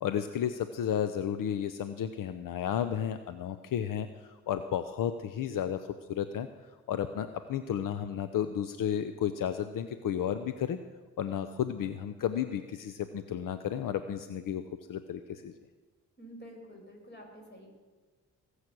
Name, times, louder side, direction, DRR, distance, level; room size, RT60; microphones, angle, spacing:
voice 1, 0.0-5.8 6.1-6.5 6.9-10.8 11.2-14.6 14.9-15.5, left 9 dB, 75° left, 10 dB, 0.7 m, -32 dB
voice 2, 16.2-17.7, equal, 30° left, 1 dB, 5.8 m, -49 dB
19.5 x 8.3 x 6.2 m, 1.3 s
cardioid pair, 65°, 33 cm